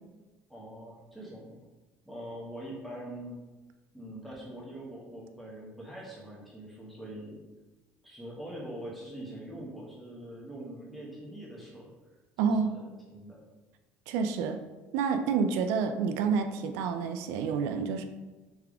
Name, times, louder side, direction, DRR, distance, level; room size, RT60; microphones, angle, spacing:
voice 1, 0.5-1.5 2.1-3.4 3.9-7.4 8.0-11.9 12.4-13.4, right 1 dB, ahead, -5 dB, 0.8 m, -43 dB
voice 2, 12.4-12.8 14.1-14.6 14.9-18.1, right 6 dB, 85° right, 7 dB, 0.4 m, -28 dB
3.5 x 3.4 x 3.4 m, 1.2 s
cardioid pair, 155°, 5 cm